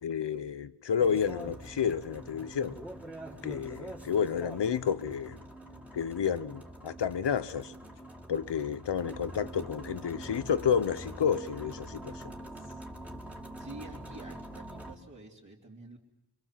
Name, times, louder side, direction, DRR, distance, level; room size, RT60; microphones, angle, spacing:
voice 1, 0.0-2.8 3.4-5.4 5.9-7.7 8.3-12.2, left 7 dB, 75° left, 1.0 m, -30 dB
sound 1, 1.0-14.9, right 1 dB, 5° right, 2.5 m, -45 dB
voice 2, 13.6-16.0, right 2 dB, 40° right, 3.4 m, -48 dB
25.5 x 25.0 x 7.5 m
wide cardioid pair, 140°, 43 cm